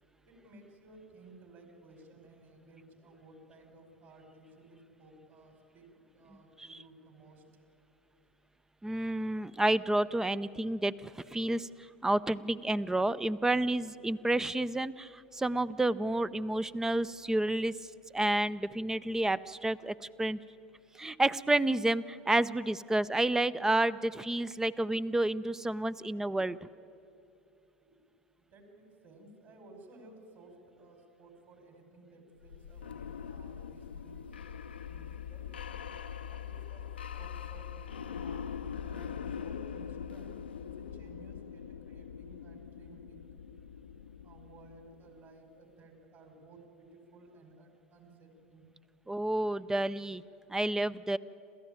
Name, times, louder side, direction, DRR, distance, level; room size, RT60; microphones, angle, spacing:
voice 1, 0.2-7.4 27.9-28.0 28.4-35.5 36.3-36.8 37.1-38.6 38.9-43.2 44.2-48.7 49.0-49.1, right 2 dB, 45° right, 4 dB, 5.2 m, -56 dB
voice 2, 8.8-17.8 18.1-20.4 20.9-26.7 49.1-50.2 50.5-51.2, right 1 dB, 10° right, 17 dB, 0.5 m, -30 dB
sound 1, 32.4-45.2, left 7 dB, 80° left, 0.7 m, -42 dB
28.5 x 14.0 x 9.0 m, 2.6 s
figure-of-eight pair, 80°, 6 cm